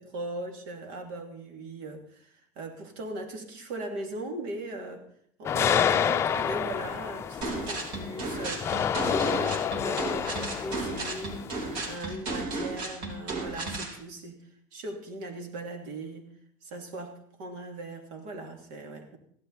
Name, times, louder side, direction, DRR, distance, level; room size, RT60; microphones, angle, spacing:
voice 1, 0.0-5.0 5.4-11.4 11.8-14.4 14.7-16.3 16.6-19.2, right 1 dB, 80° right, 4 dB, 2.9 m, -39 dB
sound 1, 5.4-11.9, left 8 dB, 25° left, 0.5 m, -29 dB
sound 2, 7.4-14.0, right 2 dB, 60° right, 3.4 m, -34 dB
15.5 x 12.0 x 4.2 m, 0.64 s
cardioid pair, 155°, 10 cm